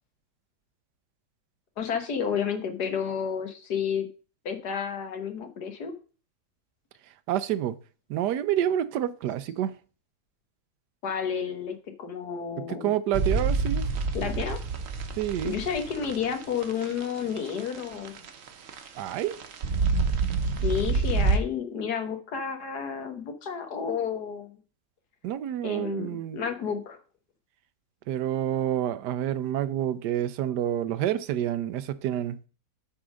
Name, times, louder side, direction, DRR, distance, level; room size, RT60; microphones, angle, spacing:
voice 1, 1.8-4.1 4.5-5.9 11.0-12.9 14.1-14.6 15.4-18.1 20.6-24.6 25.6-27.0, left 7 dB, 75° left, 1.8 m, -31 dB
voice 2, 7.3-7.8 8.1-9.7 12.6-13.9 15.2-15.5 19.0-19.4 25.2-26.4 28.1-32.4, right 11 dB, 90° right, 1.3 m, -28 dB
sound 1, 13.1-21.4, right 4 dB, 60° right, 1.2 m, -28 dB
8.5 x 3.7 x 6.3 m
omnidirectional pair, 1.7 m